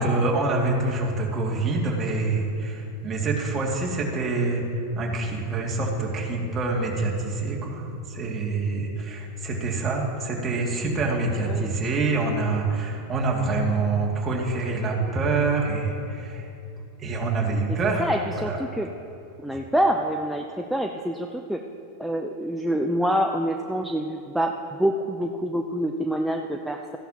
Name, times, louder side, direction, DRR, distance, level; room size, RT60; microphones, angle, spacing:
voice 1, 0.0-4.6 5.0-16.5 17.0-18.6, right 3 dB, 25° right, -3 dB, 2.3 m, -26 dB
voice 2, 11.4-11.8 18.0-18.9 19.4-21.6 22.0-24.5 24.8-27.0, equal, ahead, 3 dB, 0.6 m, -26 dB
14.5 x 11.0 x 2.9 m, 2.6 s
hypercardioid pair, 95°, 0 cm